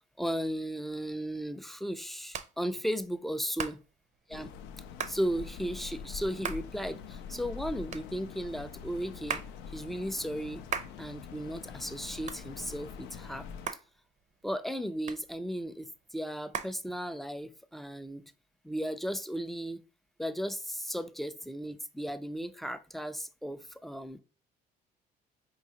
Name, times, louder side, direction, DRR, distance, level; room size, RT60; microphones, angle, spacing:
voice 1, 0.2-3.8 4.3-4.5 5.0-9.4 9.7-10.6 11.0-13.5 14.4-18.2 18.6-19.8 20.2-24.2, equal, ahead, 0.4 m, -35 dB
Hands, 0.8-17.5, right 7 dB, 45° right, 0.6 m, -43 dB
sound 1, 4.3-13.7, left 6 dB, 90° left, 0.5 m, -44 dB
4.6 x 3.1 x 2.8 m
cardioid pair, 110°, 17 cm